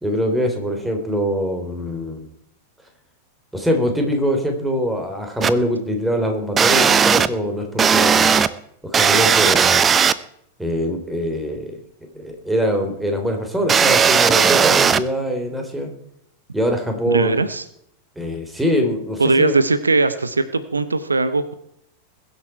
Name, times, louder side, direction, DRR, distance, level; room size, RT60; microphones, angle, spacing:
voice 1, 0.0-2.3 3.5-8.3 8.8-9.8 10.6-15.9 16.5-17.4 18.1-19.6, equal, 5° right, 4 dB, 3.3 m, -23 dB
sound 1, 5.4-5.5 6.6-7.3 7.8-8.5 8.9-10.1 13.7-15.0, right 6 dB, 20° right, 0.7 m, -15 dB
voice 2, 17.1-17.6 19.2-21.5, right 3 dB, 80° right, 14 dB, 0.8 m, -19 dB
21.5 x 8.3 x 4.5 m, 0.73 s
figure-of-eight pair, 90°, 0 cm